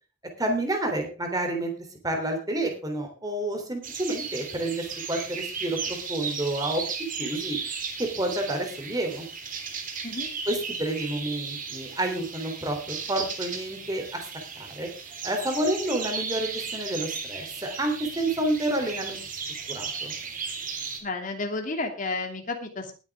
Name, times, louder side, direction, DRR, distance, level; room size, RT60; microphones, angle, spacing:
voice 1, 0.4-1.7 2.0-6.8 7.2-7.6 8.0-9.3 10.5-14.2 14.5-14.9 15.2-19.2 19.7-20.1, right 1 dB, 20° right, 3 dB, 3.3 m, -29 dB
sound 1, 3.8-21.0, right 5 dB, 45° right, 3.0 m, -35 dB
voice 2, 21.0-22.9, left 3 dB, 40° left, 4 dB, 2.7 m, -31 dB
19.5 x 8.7 x 3.6 m, 0.34 s
head